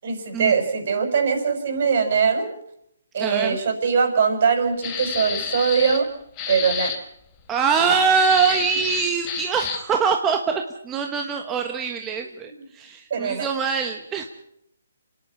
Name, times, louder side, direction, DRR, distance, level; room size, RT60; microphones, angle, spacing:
voice 1, 0.0-2.5 3.1-6.1 6.5-6.9 13.1-13.4, right 6 dB, 55° right, 6 dB, 5.8 m, -21 dB
voice 2, 3.2-3.6 7.5-14.3, right 6 dB, 15° right, 3 dB, 1.3 m, -23 dB
sound 1, 4.8-6.1 6.4-7.0 8.1-9.9, left 7 dB, 20° left, 3.5 m, -29 dB
27.0 x 11.0 x 9.9 m, 0.76 s
hypercardioid pair, 155°, 0 cm